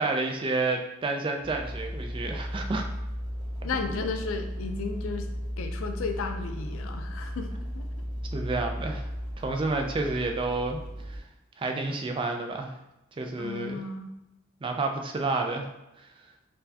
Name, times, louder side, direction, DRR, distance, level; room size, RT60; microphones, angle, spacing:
voice 1, 0.0-2.9 8.3-9.1 9.4-10.8 11.1-11.2 11.6-12.7 13.2-13.8 14.6-15.7, right 3 dB, 25° right, 4 dB, 0.3 m, -29 dB
sound 1, 1.4-11.2, equal, 20° left, 1.3 m, -35 dB
voice 2, 3.6-5.3 5.6-7.9 13.4-14.1, left 4 dB, 85° left, 5 dB, 0.4 m, -34 dB
4.2 x 2.2 x 2.7 m, 0.91 s
head